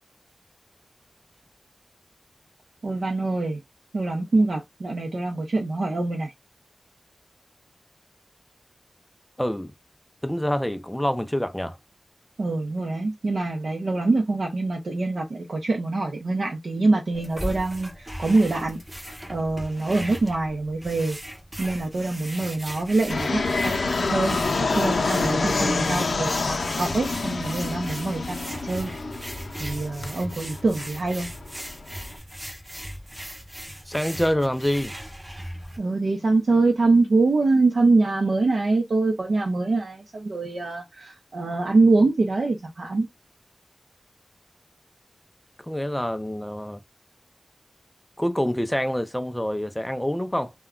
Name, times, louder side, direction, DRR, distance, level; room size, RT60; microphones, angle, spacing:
voice 1, 2.8-3.6 3.9-6.3 12.4-18.8 19.3-21.2 21.6-28.9 29.6-31.3 35.8-43.1, right 3 dB, 70° right, 0.6 m, -24 dB
voice 2, 9.4-9.7 10.2-11.8 33.9-35.0 45.6-46.8 48.2-50.5, equal, 5° left, 0.4 m, -26 dB
sound 1, 17.1-35.8, equal, 20° right, 0.9 m, -38 dB
Fixed-wing aircraft airplane, 23.1-32.1, left 3 dB, 80° left, 0.5 m, -27 dB
2.2 x 2.2 x 3.6 m
wide cardioid pair, 100°, 0 cm